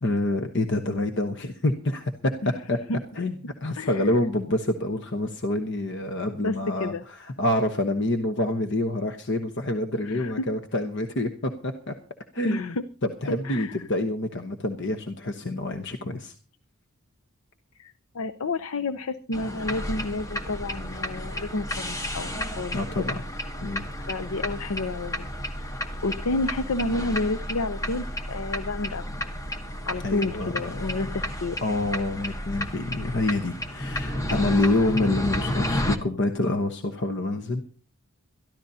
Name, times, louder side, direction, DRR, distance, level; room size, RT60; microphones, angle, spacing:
voice 1, 0.0-2.8 3.1-12.0 12.3-12.7 13.0-16.4 22.7-23.2 23.6-23.8 30.0-30.9 31.6-37.6, left 1 dB, 55° left, 6 dB, 1.0 m, -27 dB
voice 2, 2.4-3.0 3.7-4.3 6.4-7.0 10.0-10.5 12.4-12.9 13.3-13.9 17.8-23.1 24.0-25.3 25.6-25.7 26.0-29.2 29.9-31.6 34.3-34.9, left 2 dB, 75° left, 10 dB, 0.7 m, -31 dB
sound 1, 19.3-36.0, left 1 dB, 15° left, 1.1 m, -32 dB
22.0 x 13.5 x 2.8 m, 0.36 s
head